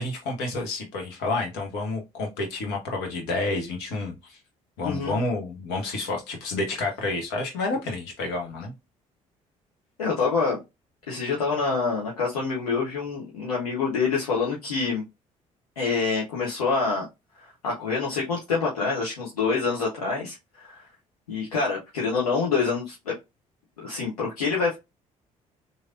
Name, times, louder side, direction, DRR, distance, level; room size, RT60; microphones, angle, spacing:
voice 1, 0.0-4.4 4.8-8.7, left 2 dB, 65° left, 1.0 m, -29 dB
voice 2, 4.8-5.2 10.0-10.6 11.1-15.0 15.8-17.0 17.4-20.4 20.6-20.7 21.3-23.1 23.8-24.8, left 4 dB, 80° left, 0.7 m, -26 dB
3.1 x 2.6 x 2.4 m
figure-of-eight pair, 50°, 19 cm